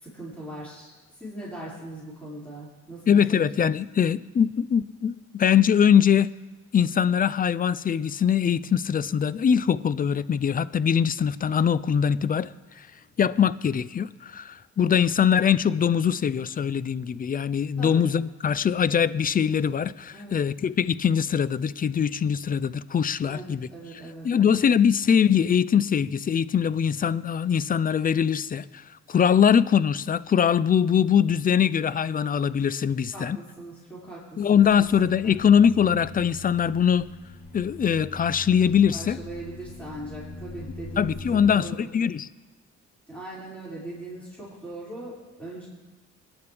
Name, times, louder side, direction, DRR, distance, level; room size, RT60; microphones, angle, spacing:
voice 1, 0.0-3.7 17.8-18.0 20.1-20.4 23.2-24.5 33.1-34.6 35.2-35.3 38.9-41.9 43.1-45.7, right 1 dB, 5° left, -8 dB, 5.5 m, -40 dB
voice 2, 3.1-6.3 6.7-12.5 12.8-12.9 13.2-23.7 24.2-33.4 34.4-37.1 37.5-39.2 41.0-42.3, left 8 dB, 30° left, 17 dB, 0.4 m, -22 dB
sound 1, 34.5-41.5, left 1 dB, 60° left, 2.0 m, -42 dB
22.0 x 9.9 x 3.4 m, 1.2 s
cardioid pair, 90°, 30 cm